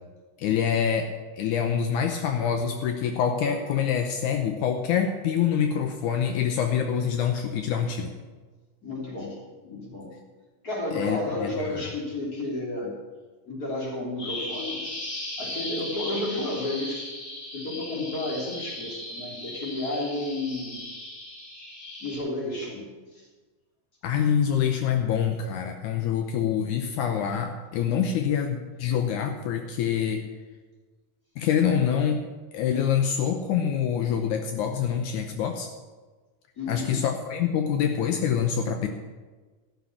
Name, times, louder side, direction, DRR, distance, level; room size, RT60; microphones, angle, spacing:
voice 1, 0.4-8.1 10.9-11.8 24.0-30.2 31.4-32.2 32.5-35.7 36.7-38.9, left 8 dB, 80° left, 5 dB, 2.3 m, -26 dB
voice 2, 8.8-10.1 10.6-13.0 13.5-15.0 15.4-17.1 17.5-20.8 22.0-22.9 23.1-23.3 36.6-37.0, left 2 dB, 30° left, -3 dB, 3.4 m, -32 dB
Bird vocalization bird call bird song, 14.2-22.2, left 1 dB, 60° left, 6.0 m, -37 dB
14.0 x 6.8 x 8.3 m, 1.3 s
omnidirectional pair, 3.5 m